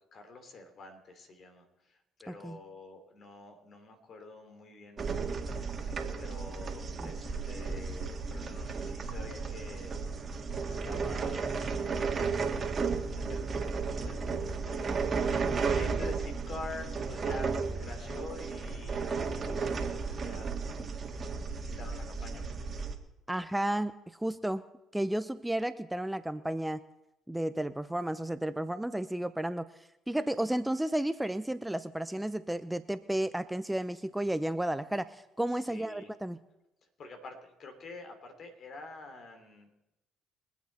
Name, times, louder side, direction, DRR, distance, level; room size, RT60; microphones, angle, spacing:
voice 1, 0.1-10.2 10.6-15.0 15.7-20.5 21.2-21.4 21.6-22.6 35.5-36.1 37.0-39.7, left 3 dB, 55° left, 5 dB, 3.1 m, -48 dB
voice 2, 2.3-2.6 7.0-7.1 23.3-24.6 24.9-26.8 27.3-29.7 30.1-36.4, right 1 dB, 5° right, 13 dB, 0.6 m, -32 dB
sound 1, 5.0-23.0, right 4 dB, 40° right, 2.0 m, -34 dB
23.5 x 8.2 x 4.3 m, 0.92 s
hypercardioid pair, 60°, 0 cm